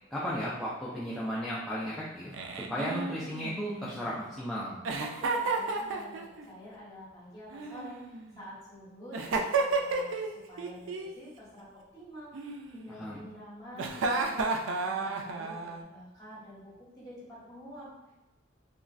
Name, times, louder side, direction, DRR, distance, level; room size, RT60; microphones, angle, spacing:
voice 1, 0.1-2.3 2.7-4.8 13.0-13.2, equal, ahead, -9 dB, 0.4 m, -34 dB
Giggle, 2.3-4.2 4.8-6.4 7.5-8.4 9.1-10.3 10.6-11.1 12.3-13.1 13.7-15.8, right 3 dB, 85° right, 0.4 m, -32 dB
voice 2, 5.0-18.1, equal, 20° left, -8 dB, 1.2 m, -48 dB
3.0 x 2.3 x 2.4 m, 1.1 s
head